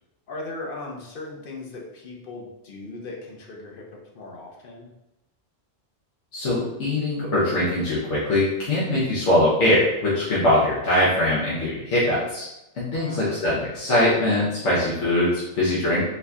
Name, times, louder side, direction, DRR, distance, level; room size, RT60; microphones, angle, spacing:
voice 1, 0.3-4.9 12.8-13.4, left 2 dB, 55° left, -1 dB, 0.8 m, -38 dB
voice 2, 6.3-12.5 12.7-16.0, left 1 dB, 90° left, -9 dB, 1.2 m, -22 dB
4.0 x 2.7 x 2.3 m, 0.90 s
omnidirectional pair, 1.2 m